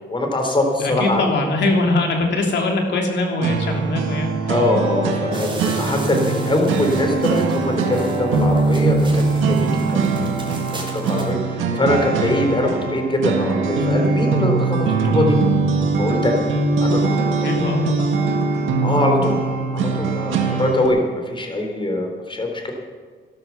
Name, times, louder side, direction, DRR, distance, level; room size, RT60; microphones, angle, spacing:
voice 1, 0.1-1.2 4.5-15.4 16.0-16.4 16.8-17.3 18.8-19.4 19.7-22.7, left 1 dB, 25° left, 3 dB, 3.6 m, -22 dB
voice 2, 0.8-4.5 17.4-18.4, left 2 dB, 60° left, 2 dB, 3.1 m, -22 dB
sound 1, 3.4-20.9, right 3 dB, 85° right, 2.0 m, -21 dB
sound 2, 5.3-11.3, right 2 dB, 25° right, 3.6 m, -38 dB
12.5 x 12.0 x 7.1 m, 1.5 s
cardioid pair, 90°, 20 cm